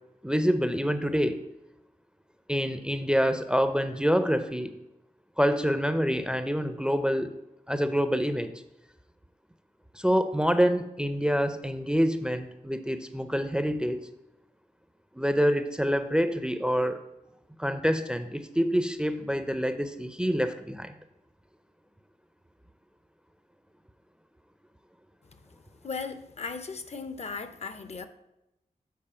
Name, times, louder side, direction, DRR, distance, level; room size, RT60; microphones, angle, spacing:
voice 1, 0.2-1.4 2.5-4.7 5.4-7.3 7.7-8.5 9.9-14.0 15.1-17.0 17.6-21.0, equal, 5° right, 10 dB, 0.4 m, -26 dB
voice 2, 25.8-28.1, left 4 dB, 50° left, 10 dB, 0.6 m, -37 dB
7.5 x 4.1 x 5.5 m, 0.90 s
wide cardioid pair, 85°, 14 cm